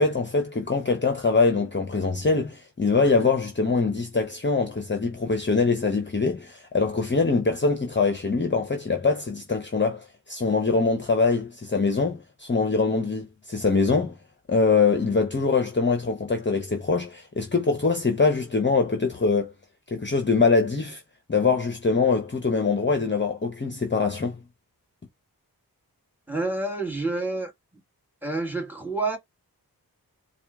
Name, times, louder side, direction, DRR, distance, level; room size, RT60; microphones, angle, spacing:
voice 1, 0.0-14.2 14.5-19.5 19.9-21.0 21.3-24.4, left 4 dB, 30° left, 0.8 m, -23 dB
voice 2, 26.3-27.5 28.2-29.2, right 2 dB, 5° right, 1.8 m, -28 dB
4.3 x 2.4 x 3.5 m
cardioid pair, 55°, 38 cm